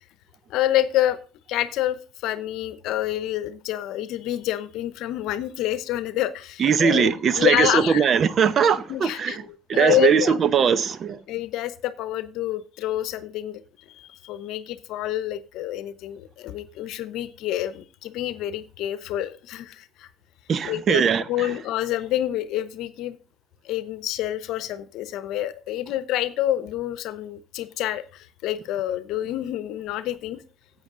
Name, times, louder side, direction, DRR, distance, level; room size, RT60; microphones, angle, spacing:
voice 1, 0.5-1.2 1.5-7.1 7.4-8.1 8.9-9.4 9.7-10.4 11.3-13.6 13.9-20.1 20.6-21.0 21.3-23.2 23.6-30.4, left 13 dB, 70° left, 0.8 m, -27 dB
voice 2, 6.6-9.4 9.7-11.2 20.5-21.5, right 7 dB, 50° right, 0.8 m, -20 dB
11.0 x 8.0 x 3.8 m
supercardioid pair, 75°, 0 cm